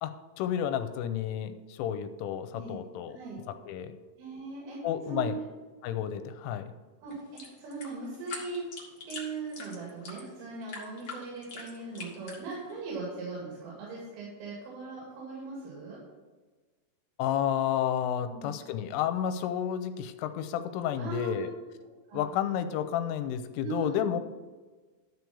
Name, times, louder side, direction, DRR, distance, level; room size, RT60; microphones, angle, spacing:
voice 1, 0.0-3.1 3.5-4.0 4.8-5.4 5.8-6.7 17.2-21.5 22.1-24.2, left 9 dB, 85° left, 10 dB, 3.1 m, -31 dB
voice 2, 4.2-4.8 5.1-5.5 7.0-8.6 9.1-16.0 18.3-18.5 21.0-21.5 22.1-22.4 23.6-24.1, right 4 dB, 85° right, -5 dB, 5.1 m, -39 dB
sound 1, 7.1-12.8, left 4 dB, 55° left, 1.2 m, -44 dB
13.0 x 4.6 x 7.0 m, 1.3 s
omnidirectional pair, 5.7 m